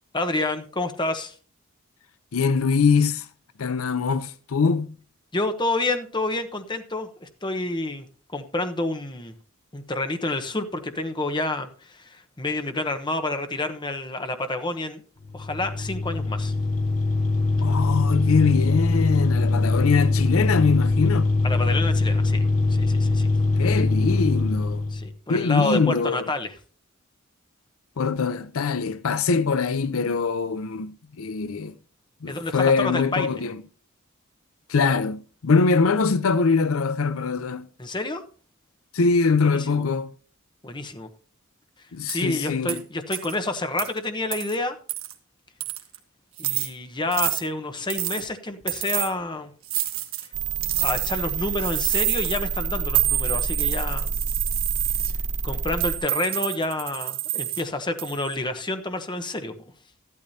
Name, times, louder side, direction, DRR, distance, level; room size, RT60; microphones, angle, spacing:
voice 1, 0.1-1.3 5.3-8.1 8.3-9.3 9.7-15.0 15.3-16.5 21.4-22.4 22.7-23.3 24.9-26.5 32.3-33.4 37.8-38.2 39.5-39.8 40.6-41.1 42.1-44.8 46.4-49.5 50.8-54.1 55.4-59.5, left 2 dB, 20° left, 1.0 m, -29 dB
voice 2, 2.3-3.3 3.6-5.0 17.6-21.4 23.6-24.8 25.3-26.3 28.0-31.7 32.2-33.6 34.7-37.7 38.9-40.1 41.9-42.8, left 4 dB, 75° left, 0.6 m, -23 dB
sound 1, 15.2-25.1, left 3 dB, 40° left, 3.1 m, -22 dB
sound 2, 42.1-42.2 42.7-42.8 43.1-43.3 43.8-43.9 44.3-44.6 44.9-45.1 45.6-46.0 46.4-46.7 47.1-47.4 47.9-48.2 48.7-49.1 49.7-50.3 50.6-51.2 51.6-52.4 52.9-55.1 55.8-57.6 58.0-58.3, right 14 dB, 75° right, 1.4 m, -27 dB
sound 3, 50.3-56.0, right 5 dB, 40° right, 1.2 m, -28 dB
14.0 x 12.0 x 2.8 m
head